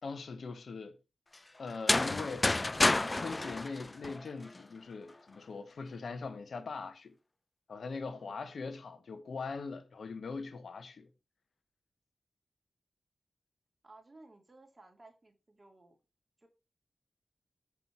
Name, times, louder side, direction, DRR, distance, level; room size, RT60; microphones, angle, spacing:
voice 1, 0.0-1.0 1.6-2.5 3.1-7.2 7.7-11.1, left 4 dB, 80° left, 1.2 m, -41 dB
sound 1, 1.7-4.6, left 2 dB, 35° left, 0.3 m, -29 dB
voice 2, 8.1-8.5 13.8-16.0 16.4-16.5, right 2 dB, 40° right, 3.2 m, -58 dB
7.8 x 5.9 x 4.6 m
cardioid pair, 40°, 0 cm